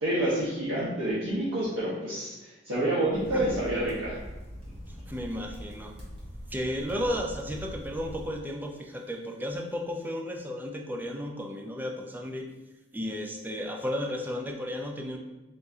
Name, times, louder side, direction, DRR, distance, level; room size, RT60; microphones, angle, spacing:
voice 1, 0.0-4.2, right 1 dB, 80° right, -9 dB, 1.0 m, -28 dB
sound 1, 3.1-8.3, equal, 30° right, 1.2 m, -42 dB
voice 2, 5.1-5.9 6.5-12.5 12.9-15.2, left 1 dB, 10° right, 2 dB, 0.4 m, -33 dB
4.1 x 2.6 x 3.5 m, 1.1 s
head